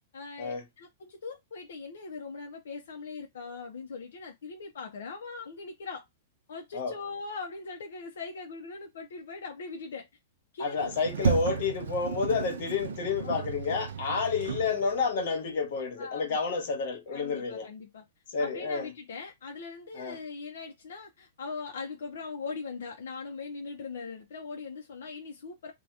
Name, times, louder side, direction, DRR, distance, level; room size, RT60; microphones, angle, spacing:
voice 1, 0.1-6.1 6.5-10.1 10.5-10.8 13.2-13.8 14.1-14.2 16.0-16.4 17.1-18.0 18.4-25.7, left 4 dB, 85° left, 0.6 m, -41 dB
voice 2, 10.6-17.7 18.3-18.9 19.9-20.2, left 5 dB, 55° left, 1.1 m, -30 dB
Sliding door, 10.8-15.2, right 6 dB, 85° right, 0.4 m, -33 dB
2.8 x 2.2 x 3.2 m
supercardioid pair, 160°, 0 cm